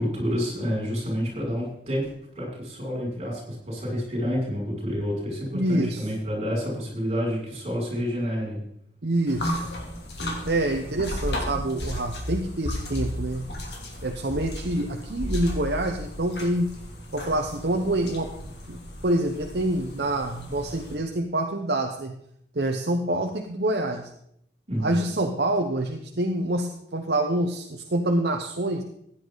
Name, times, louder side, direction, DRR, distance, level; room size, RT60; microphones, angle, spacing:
voice 1, 0.0-8.6 24.7-24.9, equal, 35° right, -3 dB, 6.4 m, -29 dB
voice 2, 5.5-6.0 9.0-9.6 10.4-13.5 14.0-16.7 17.1-18.3 18.7-18.8 19.0-22.1 22.5-24.1 24.8-28.8, right 1 dB, 60° right, 3 dB, 0.9 m, -26 dB
sound 1, 9.3-21.0, equal, 65° left, 2.9 m, -34 dB
15.5 x 10.0 x 4.0 m, 0.73 s
head